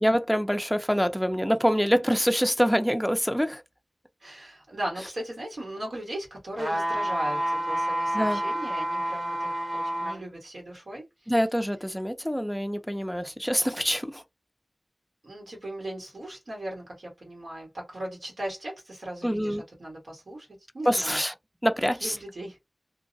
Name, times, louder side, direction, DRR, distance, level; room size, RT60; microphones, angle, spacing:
voice 1, 0.0-3.6 8.1-8.4 11.3-14.2 19.2-19.6 20.9-21.3 21.6-22.2, equal, 5° left, 0.4 m, -25 dB
voice 2, 4.2-11.3 15.2-20.5 20.7-21.2 22.0-22.6, right 1 dB, 90° right, 1.5 m, -38 dB
sound 1, 6.6-10.2 10.7-10.8, equal, 65° right, 1.0 m, -28 dB
2.6 x 2.0 x 2.6 m
wide cardioid pair, 50°, 0 cm